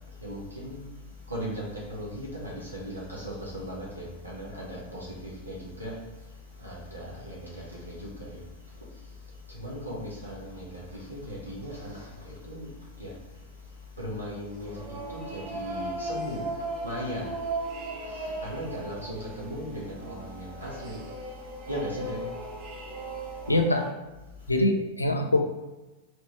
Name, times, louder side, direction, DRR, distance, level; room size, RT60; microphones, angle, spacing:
voice 1, 0.0-23.5 24.3-24.5, equal, 80° right, -4 dB, 1.4 m, -38 dB
sound 1, 14.5-23.9, right 2 dB, 35° right, 0.7 m, -37 dB
voice 2, 23.5-23.9 24.5-25.4, left 1 dB, 85° left, 4 dB, 0.5 m, -23 dB
4.2 x 3.0 x 3.0 m, 1.1 s
figure-of-eight pair, 90°, 0 cm